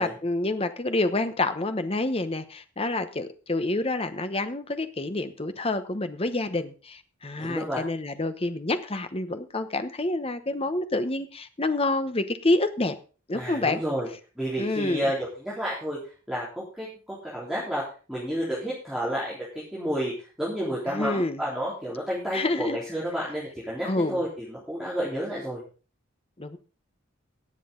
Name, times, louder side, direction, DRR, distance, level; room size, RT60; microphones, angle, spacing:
voice 1, 0.0-12.9 13.3-13.8 14.6-15.1 20.9-21.4 22.3-22.8 23.8-24.2 26.4-26.6, left 2 dB, 30° left, 10 dB, 1.0 m, -28 dB
voice 2, 7.4-7.8 13.3-14.1 14.4-16.0 16.3-16.5 16.7-20.1 20.4-25.6, equal, ahead, -8 dB, 3.8 m, -30 dB
18.0 x 7.8 x 3.9 m, 0.36 s
head